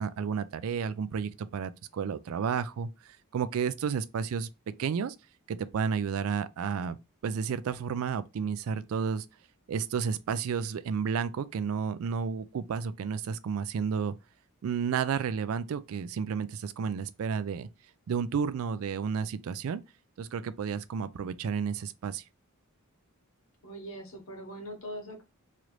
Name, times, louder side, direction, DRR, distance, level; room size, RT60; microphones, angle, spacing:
voice 1, 0.0-4.5 4.8-5.2 5.5-7.0 7.2-9.3 9.7-14.1 14.6-17.7 18.1-19.8 20.2-22.2, right 6 dB, 65° right, 0.3 m, -31 dB
voice 2, 23.6-25.2, equal, 65° left, 1.2 m, -41 dB
3.1 x 2.5 x 3.0 m
head